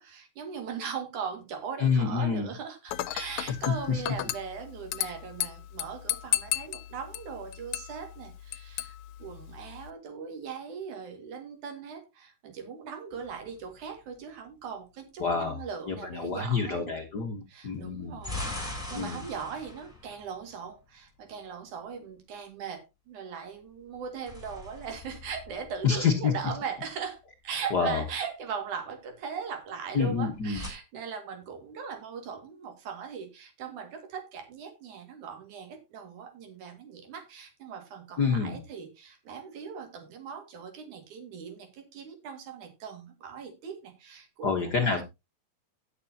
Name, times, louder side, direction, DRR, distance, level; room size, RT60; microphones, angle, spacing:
voice 1, 0.0-17.0 17.5-45.0, right 6 dB, 80° right, 3.5 m, -39 dB
voice 2, 1.8-2.5 3.9-4.0 15.2-15.6 15.9-18.2 18.9-19.2 25.8-26.3 27.7-28.0 29.9-30.6 38.2-38.6 44.4-45.0, left 5 dB, 50° left, 1.2 m, -27 dB
Dishes pots and pans / Glass, 2.9-9.9, left 15 dB, 80° left, 2.0 m, -35 dB
sound 1, 13.1-14.1 17.8-21.1 23.9-26.4 30.1-30.7, left 2 dB, 5° left, 3.3 m, -41 dB
17.0 x 6.8 x 2.8 m
omnidirectional pair, 3.5 m